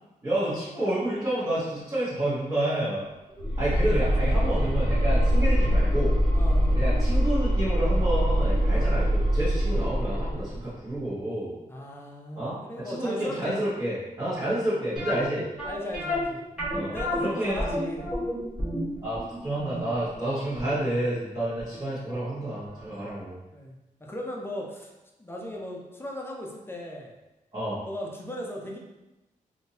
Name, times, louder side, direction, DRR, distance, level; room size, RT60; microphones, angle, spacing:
voice 1, 0.2-3.0 3.6-6.2 6.7-11.5 12.4-15.4 16.7-17.6 19.0-23.4 27.5-27.8, right 1 dB, 25° right, -13 dB, 1.3 m, -29 dB
sound 1, 3.4-10.6, equal, 65° right, 0.9 m, -23 dB
voice 2, 6.3-6.8 8.7-9.0 11.7-13.6 14.3-14.6 15.6-16.4 16.9-18.1 23.5-24.9 25.2-27.1 27.8-28.8, left 1 dB, 15° left, -1 dB, 0.5 m, -37 dB
sound 2, 15.0-21.8 22.1-22.2 22.8-22.9 23.2-23.3, left 1 dB, 5° right, 1.4 m, -32 dB
3.5 x 2.7 x 2.8 m, 1.0 s
wide cardioid pair, 110°, 14 cm